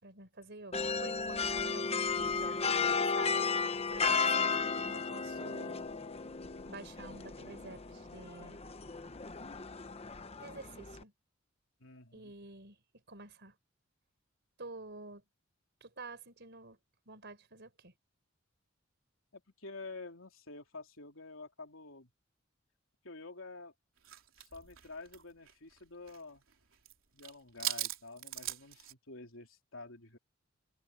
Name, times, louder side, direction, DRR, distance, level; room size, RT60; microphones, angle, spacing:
voice 1, 0.0-2.4 2.9-5.9 6.7-8.6 10.4-11.1 12.1-12.8 13.1-13.5 14.6-15.2 15.8-16.8 17.1-17.9, right 3 dB, 55° right, 4.6 m, -49 dB
sound 1, 0.7-11.0, left 5 dB, 30° left, 0.9 m, -34 dB
voice 2, 11.8-12.4 19.3-22.1 23.0-23.7 24.4-26.4 27.1-30.2, left 3 dB, 80° left, 3.3 m, -49 dB
sound 2, 24.0-26.2 26.5-26.9 27.2-28.9, right 13 dB, 75° right, 3.8 m, -40 dB
head